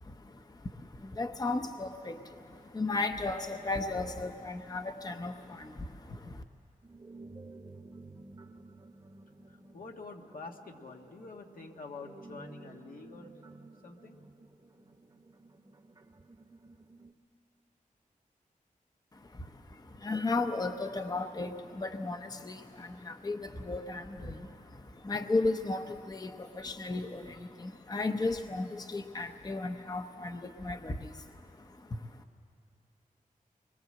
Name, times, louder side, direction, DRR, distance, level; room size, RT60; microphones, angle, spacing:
voice 1, 0.0-6.4 19.1-32.2, left 3 dB, 25° left, 6 dB, 0.8 m, -35 dB
sound 1, 6.8-17.1, right 2 dB, 30° right, 1.0 m, -53 dB
voice 2, 9.5-13.3 13.8-14.2, left 4 dB, 80° left, 2 dB, 1.7 m, -47 dB
25.5 x 21.5 x 7.7 m, 2.7 s
wide cardioid pair, 135°, 14 cm